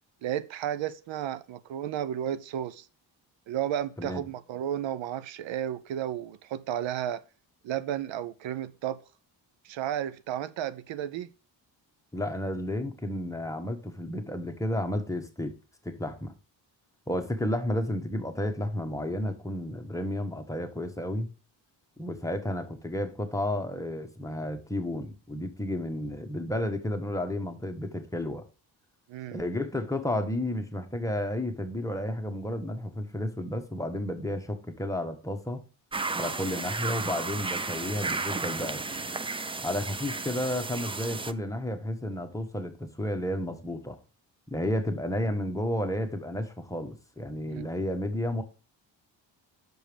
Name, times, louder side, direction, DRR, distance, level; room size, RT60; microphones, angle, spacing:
voice 1, 0.2-2.9 3.5-7.2 7.6-9.0 9.6-11.3 29.1-29.4 47.5-47.7, right 10 dB, 80° right, 0.7 m, -33 dB
voice 2, 12.1-15.5 15.8-16.3 17.1-21.3 22.0-28.4 29.3-35.6 36.1-38.9 39.6-44.0 44.5-48.4, left 1 dB, 5° left, 1.1 m, -32 dB
sound 1, 35.9-41.3, right 3 dB, 15° right, 0.3 m, -33 dB
6.2 x 5.1 x 5.1 m
cardioid pair, 100°, 45 cm